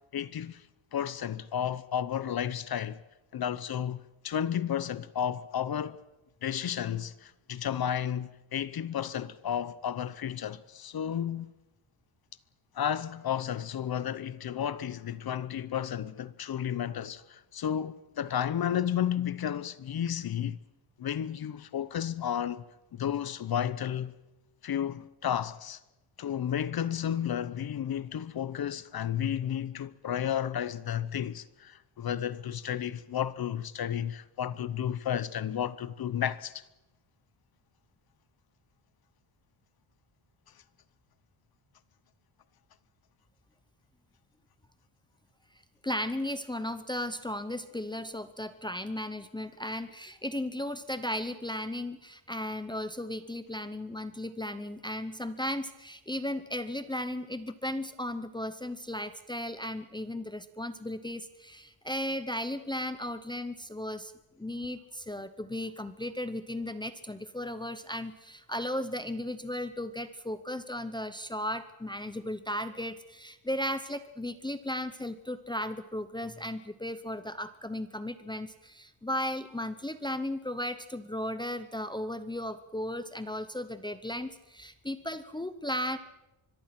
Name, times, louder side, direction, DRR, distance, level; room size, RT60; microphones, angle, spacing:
voice 1, 0.1-0.6 0.9-3.0 3.3-6.0 6.4-11.5 12.7-20.6 21.0-22.6 22.9-24.1 24.6-25.8 26.2-36.6, left 9 dB, 50° left, 0.8 m, -32 dB
voice 2, 45.8-64.1 64.4-86.0, left 1 dB, 10° left, 0.7 m, -35 dB
24.5 x 22.5 x 5.9 m
wide cardioid pair, 170°, 48 cm